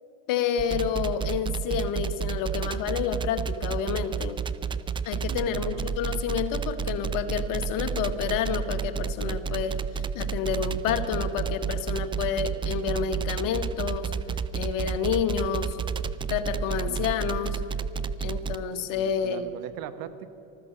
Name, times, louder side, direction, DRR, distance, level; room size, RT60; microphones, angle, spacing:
voice 1, 0.3-4.4 5.0-9.7 10.1-14.1 14.5-15.8 16.3-17.6 18.2-19.5, left 7 dB, 55° left, 9 dB, 1.4 m, -29 dB
sound 1, 0.6-18.6, right 6 dB, 15° right, 0.3 m, -30 dB
voice 2, 5.3-5.8 16.9-17.1 18.9-20.3, right 11 dB, 55° right, 12 dB, 1.1 m, -40 dB
14.5 x 13.0 x 6.6 m, 3.0 s
hypercardioid pair, 90°, 40 cm